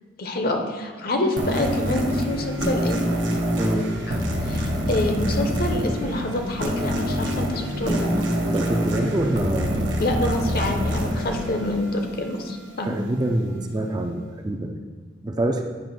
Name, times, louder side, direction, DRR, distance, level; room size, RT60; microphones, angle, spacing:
voice 1, 0.2-3.0 4.4-8.1 10.0-12.9, left 1 dB, 55° left, 4 dB, 0.9 m, -26 dB
sound 1, 1.4-12.5, equal, 90° right, 1.1 m, -26 dB
voice 2, 3.6-3.9 8.5-10.0 12.8-14.7 15.2-15.6, right 1 dB, 20° right, 4 dB, 0.5 m, -25 dB
8.9 x 3.1 x 5.9 m, 1.5 s
head